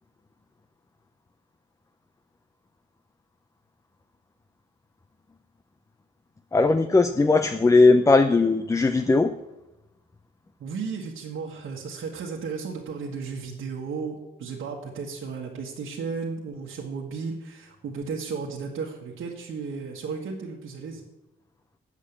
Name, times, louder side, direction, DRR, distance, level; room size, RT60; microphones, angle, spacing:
voice 1, 6.5-9.3, left 3 dB, 15° left, 9 dB, 0.4 m, -18 dB
voice 2, 10.6-21.0, right 5 dB, 80° right, -3 dB, 1.6 m, -34 dB
8.5 x 7.4 x 8.4 m, 0.99 s
wide cardioid pair, 120°, 20 cm